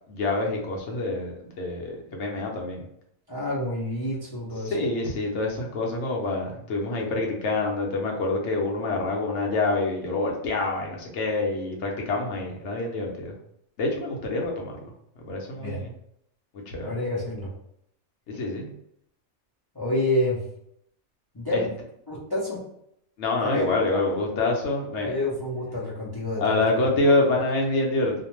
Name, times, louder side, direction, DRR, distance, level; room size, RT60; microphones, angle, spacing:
voice 1, 0.0-2.8 4.6-13.4 13.8-14.8 15.3-15.9 16.7-16.9 18.3-18.7 21.5-21.6 23.2-25.2 26.4-28.2, left 2 dB, 65° left, 0 dB, 0.9 m, -26 dB
voice 2, 3.3-4.7 15.6-15.8 16.8-17.5 19.7-20.4 21.3-21.7 22.1-22.6 23.4-23.6 23.9-24.2 25.0-26.8, left 1 dB, 35° left, -6 dB, 0.4 m, -28 dB
2.5 x 2.2 x 3.0 m, 0.73 s
omnidirectional pair, 1.5 m